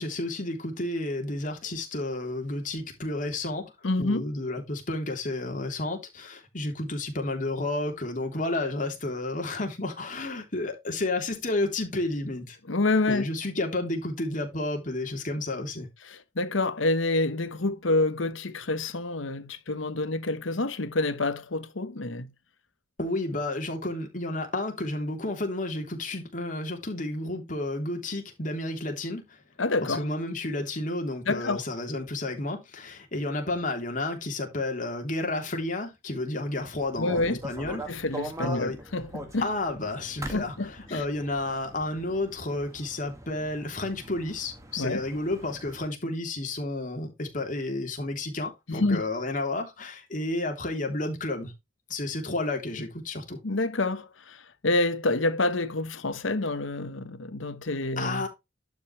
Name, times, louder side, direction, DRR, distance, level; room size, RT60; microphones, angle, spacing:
voice 1, 0.0-3.7 4.0-12.6 13.1-15.9 23.0-29.4 29.8-38.0 38.4-38.8 39.4-51.5 51.9-53.4 58.0-58.3, left 2 dB, 45° left, 3.2 m, -31 dB
voice 2, 3.8-4.2 12.7-13.3 16.1-22.3 29.6-30.0 31.3-31.6 37.0-37.4 37.9-39.5 40.3-41.0 44.8-45.0 48.7-49.0 53.4-58.3, left 2 dB, 90° left, 1.2 m, -28 dB
sound 1, 36.6-45.8, right 1 dB, 15° right, 1.9 m, -43 dB
11.5 x 5.4 x 3.2 m
head